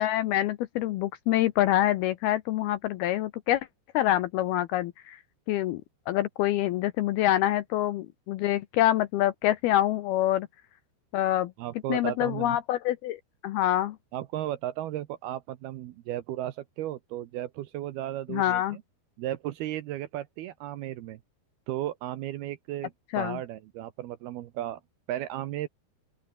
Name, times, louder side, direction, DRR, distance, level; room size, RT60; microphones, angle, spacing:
voice 1, 0.0-3.7 3.9-5.2 5.5-5.8 6.1-10.5 11.1-11.5 11.9-14.0 18.3-18.8 23.1-23.4, left 13 dB, 80° left, 2.4 m, -26 dB
voice 2, 11.6-12.6 14.1-18.8 19.2-21.2 21.7-24.8 25.1-25.7, right 13 dB, 75° right, 2.5 m, -35 dB
open air
omnidirectional pair, 5.3 m